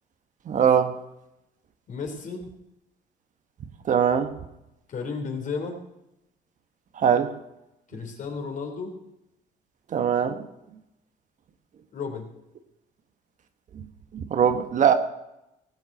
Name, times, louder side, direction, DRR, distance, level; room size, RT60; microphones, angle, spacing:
voice 1, 0.5-1.0 3.9-4.3 7.0-7.3 9.9-10.4 13.7-13.8 14.1-14.9, right 8 dB, 50° right, 9 dB, 1.3 m, -21 dB
voice 2, 1.9-2.4 4.9-5.8 7.9-9.0 11.9-12.3, left 5 dB, 50° left, 4 dB, 3.3 m, -33 dB
19.0 x 7.3 x 6.0 m, 0.88 s
cardioid pair, 110°, 17 cm